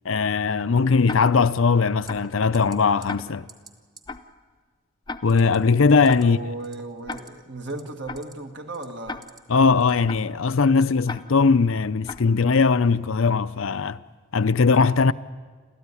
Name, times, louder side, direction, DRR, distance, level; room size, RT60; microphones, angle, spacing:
voice 1, 0.0-3.5 5.2-6.4 9.5-14.0 14.3-15.1, left 4 dB, 80° left, 0.6 m, -20 dB
Tick-tock, 1.0-1.5 2.1-2.4 3.1-3.5 4.1-4.4 5.1-5.5 6.1-6.4 7.1-7.5 8.1-8.4 9.1-9.5 10.1-10.4 11.0-11.5 12.0-12.4, left 3 dB, 20° left, 0.6 m, -38 dB
sound 1, 2.1-2.3 2.5-2.8 3.0-3.2 3.5-3.7 4.0-4.1 5.3-5.6 5.9-6.2 6.6-7.3 7.7-8.3 8.7-9.4 9.8-10.0, right 3 dB, 20° right, 1.7 m, -47 dB
voice 2, 6.2-9.3, right 2 dB, 55° right, 1.9 m, -35 dB
29.5 x 13.5 x 9.8 m
head